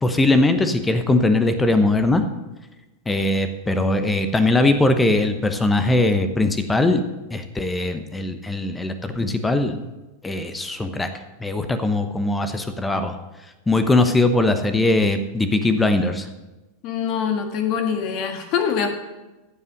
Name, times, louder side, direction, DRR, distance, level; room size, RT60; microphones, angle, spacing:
voice 1, 0.0-2.2 3.1-7.0 7.3-9.8 10.2-11.1 11.4-13.2 13.7-16.3, left 2 dB, 10° left, 9 dB, 1.0 m, -20 dB
voice 2, 16.8-18.9, left 7 dB, 45° left, 6 dB, 1.8 m, -24 dB
15.0 x 5.5 x 6.6 m, 1.1 s
figure-of-eight pair, 90°, 0 cm